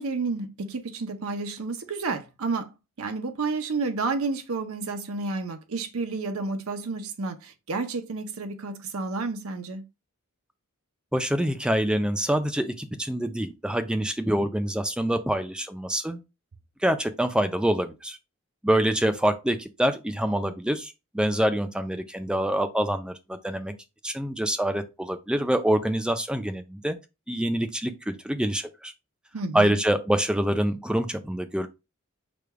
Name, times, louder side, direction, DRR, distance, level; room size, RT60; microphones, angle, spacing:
voice 1, 0.0-2.7 3.0-9.8 29.3-29.8, right 3 dB, 75° right, 0.6 m, -30 dB
voice 2, 11.1-16.2 16.8-18.2 18.6-23.7 24.0-27.0 27.3-28.9 29.5-31.7, right 1 dB, 5° right, 0.4 m, -26 dB
5.0 x 2.3 x 4.6 m
head